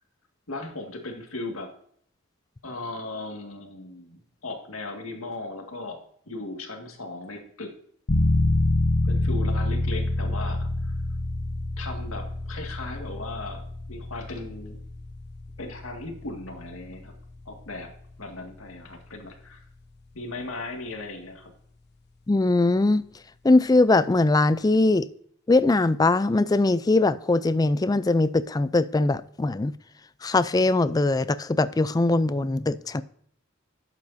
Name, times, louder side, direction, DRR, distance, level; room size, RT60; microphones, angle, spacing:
voice 1, 0.5-1.7 2.6-6.0 6.3-7.7 9.0-10.9 11.8-14.8 15.6-17.2 17.5-17.9 18.2-19.6 20.1-21.5, left 2 dB, 85° left, 2.0 m, -37 dB
sound 1, 8.1-18.6, left 2 dB, 55° left, 0.9 m, -27 dB
voice 2, 22.3-23.0 23.4-25.1 25.5-29.7 30.2-33.0, left 2 dB, 20° left, 0.3 m, -21 dB
11.5 x 8.1 x 2.7 m
head